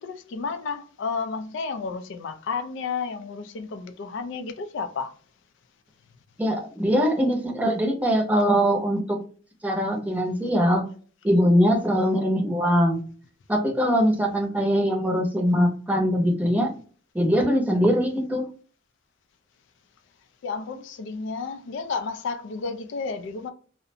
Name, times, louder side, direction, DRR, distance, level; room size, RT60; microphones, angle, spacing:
voice 1, 0.0-5.1 20.4-23.5, left 5 dB, 65° left, 0.4 m, -32 dB
voice 2, 6.4-9.2 9.6-10.8 11.2-13.0 13.5-16.7 17.1-18.5, equal, 10° right, 0.6 m, -22 dB
2.4 x 2.1 x 2.7 m
head